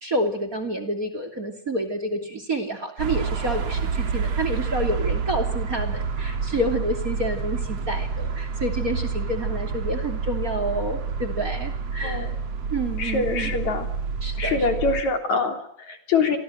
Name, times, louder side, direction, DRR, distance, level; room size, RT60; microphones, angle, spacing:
voice 1, 0.0-12.3 12.7-13.5 14.2-14.7, right 1 dB, 30° right, 10 dB, 3.1 m, -28 dB
sound 1, 3.0-15.0, right 5 dB, 55° right, 3.2 m, -28 dB
voice 2, 13.0-13.9 14.4-16.4, left 4 dB, 65° left, 6 dB, 4.8 m, -24 dB
28.5 x 24.5 x 7.9 m, 0.66 s
omnidirectional pair, 3.5 m